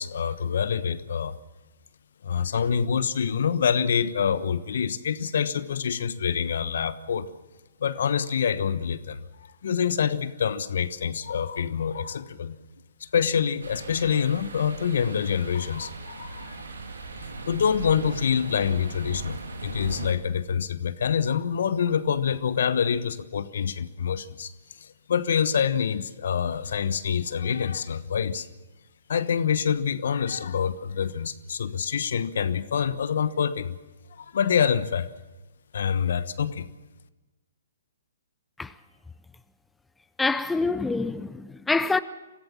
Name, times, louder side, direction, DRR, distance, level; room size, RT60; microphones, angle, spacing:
voice 1, 0.0-1.4 2.2-7.3 7.8-9.2 9.6-12.6 13.0-16.6 17.5-24.5 24.8-28.5 29.1-33.8 34.2-35.1 35.7-36.7, left 7 dB, 65° left, 1.2 m, -26 dB
sound 1, 13.6-20.1, right 3 dB, 80° right, 3.0 m, -38 dB
voice 2, 40.2-42.0, left 3 dB, 5° left, 0.6 m, -26 dB
24.5 x 15.5 x 7.4 m
hypercardioid pair, 130°, 0 cm